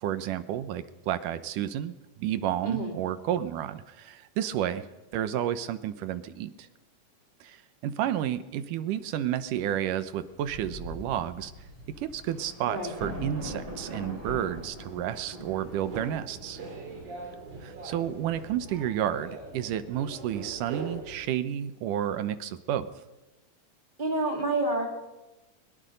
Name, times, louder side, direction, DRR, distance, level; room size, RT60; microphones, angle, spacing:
voice 1, 0.0-6.7 7.4-11.5 12.0-16.6 17.6-22.9, right 11 dB, 85° right, 12 dB, 2.5 m, -31 dB
voice 2, 2.6-3.0 12.7-12.9 24.0-24.9, right 2 dB, 15° right, 0 dB, 3.8 m, -28 dB
Thunder, 10.1-10.2 10.4-16.2, equal, 40° right, 5.6 m, -41 dB
sound 1, 15.6-21.2, right 3 dB, 70° right, 4.9 m, -41 dB
22.5 x 22.0 x 5.3 m, 1.1 s
omnidirectional pair, 3.7 m